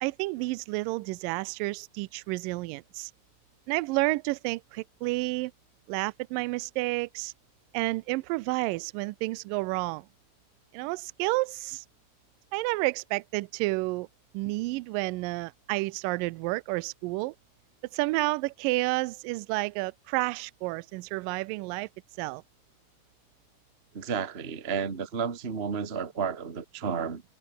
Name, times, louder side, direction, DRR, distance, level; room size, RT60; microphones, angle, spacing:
voice 1, 0.0-3.1 3.7-5.5 5.9-7.3 7.7-10.1 10.7-11.8 12.5-14.1 14.3-17.3 17.9-21.9 22.2-22.4, right 23 dB, 90° right, 1.9 m, -30 dB
voice 2, 23.9-27.2, right 6 dB, 75° right, 0.5 m, -32 dB
omnidirectional pair, 4.6 m